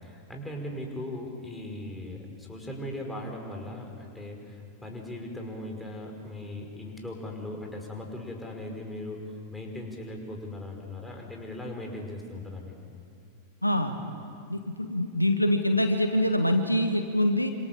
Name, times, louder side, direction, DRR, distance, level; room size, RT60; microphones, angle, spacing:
voice 1, 0.0-9.2 9.5-12.9, left 1 dB, 5° left, 1 dB, 5.3 m, -38 dB
voice 2, 13.6-14.1 14.5-17.5, left 1 dB, 85° left, 6 dB, 1.5 m, -25 dB
27.0 x 27.0 x 7.3 m, 2.5 s
figure-of-eight pair, 90°, 0 cm